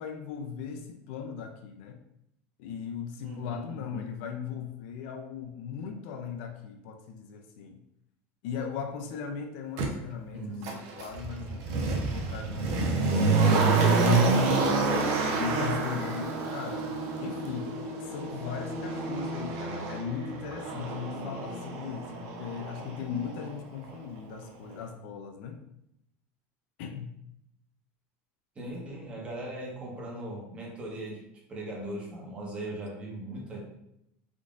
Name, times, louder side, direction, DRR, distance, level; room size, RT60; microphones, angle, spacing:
voice 1, 0.0-2.0 2.6-7.8 8.4-11.8 12.1-14.6 15.3-16.9 17.2-17.7 18.1-25.6 26.8-27.1 33.4-33.5, left 7 dB, 70° left, 5 dB, 0.4 m, -38 dB
voice 2, 3.2-4.1 10.3-10.8 28.5-31.2 31.5-33.6, right 1 dB, 20° right, -4 dB, 0.9 m, -39 dB
Motor vehicle (road), 9.8-9.9 10.6-23.5 23.8-23.9, right 3 dB, 55° right, 0.6 m, -28 dB
3.6 x 2.5 x 2.4 m, 0.80 s
cardioid pair, 155°, 6 cm